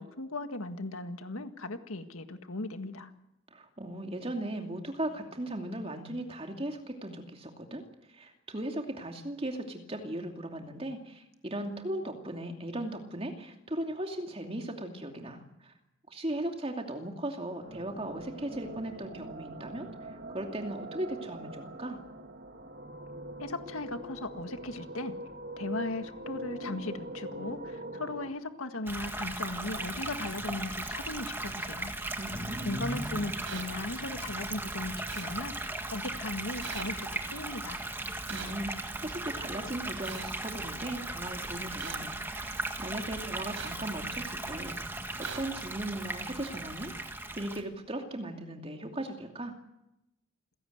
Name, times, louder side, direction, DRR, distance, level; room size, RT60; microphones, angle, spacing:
voice 1, 0.0-3.1 23.4-25.2 25.6-31.9 32.7-37.8, left 2 dB, 90° left, 8 dB, 1.8 m, -37 dB
voice 2, 3.5-7.8 8.1-15.7 16.1-22.0 32.2-32.8 38.3-44.8 45.2-49.5, right 1 dB, 25° right, 3 dB, 2.7 m, -38 dB
sound 1, 17.6-28.3, right 1 dB, 50° right, 1.7 m, -43 dB
sound 2, 28.9-47.6, right 2 dB, 10° right, 1.6 m, -37 dB
sound 3, 33.4-33.6 35.1-35.3 36.6-36.8 38.3-38.5 40.0-40.2 41.8-42.0 43.5-43.7 45.2-45.4, right 6 dB, 75° right, 4.0 m, -40 dB
27.5 x 17.0 x 8.1 m, 0.89 s
head